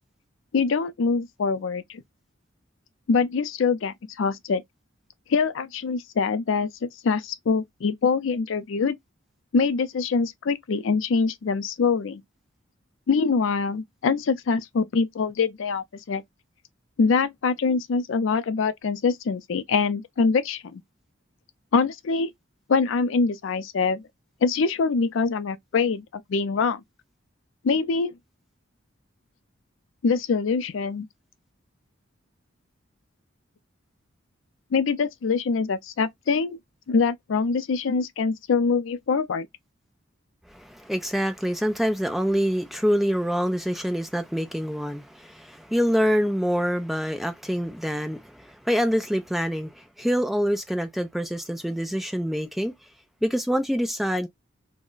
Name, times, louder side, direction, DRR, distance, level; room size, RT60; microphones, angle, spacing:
voice 1, 0.5-2.0 3.1-4.6 5.3-9.0 9.5-12.2 13.1-16.2 17.0-20.8 21.7-22.3 22.7-24.0 24.4-26.0 26.3-26.8 27.6-28.1 30.0-31.1 34.7-36.6 36.9-39.5, left 5 dB, 70° left, 0.4 m, -24 dB
voice 2, 40.5-52.7 53.2-54.3, equal, ahead, 0.3 m, -26 dB
2.4 x 2.1 x 3.7 m
head